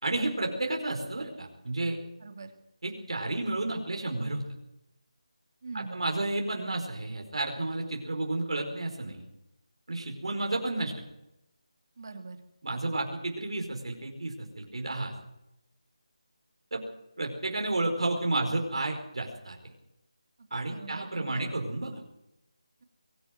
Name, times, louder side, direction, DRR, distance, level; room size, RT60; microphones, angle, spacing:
voice 1, 0.0-2.0 2.8-4.4 5.7-9.3 9.9-10.9 12.6-15.1 16.7-16.8 17.2-19.6 20.5-21.9, right 2 dB, 70° right, 2 dB, 4.8 m, -31 dB
voice 2, 2.2-2.5 5.6-6.1 12.0-12.4 20.4-21.4, right 4 dB, 40° right, 6 dB, 2.6 m, -43 dB
23.5 x 12.0 x 9.6 m, 0.88 s
figure-of-eight pair, 175°, 3 cm